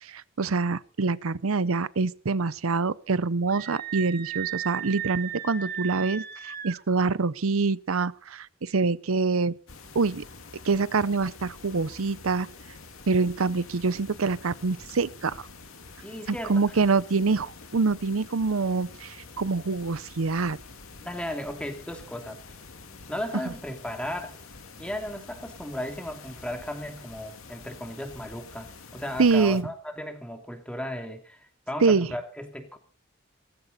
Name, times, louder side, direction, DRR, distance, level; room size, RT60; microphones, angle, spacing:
voice 1, 0.0-9.5 9.9-10.2 10.6-12.5 13.1-15.4 16.3-20.6 29.2-29.7 31.8-32.1, right 4 dB, 85° right, 0.7 m, -25 dB
Screaming, 3.5-6.8, right 10 dB, 45° right, 2.1 m, -35 dB
sound 1, 9.7-29.6, left 4 dB, 85° left, 2.3 m, -47 dB
voice 2, 16.0-16.6 21.0-22.4 23.1-24.4 24.8-32.8, left 1 dB, 5° left, 2.7 m, -35 dB
18.0 x 15.0 x 4.1 m
head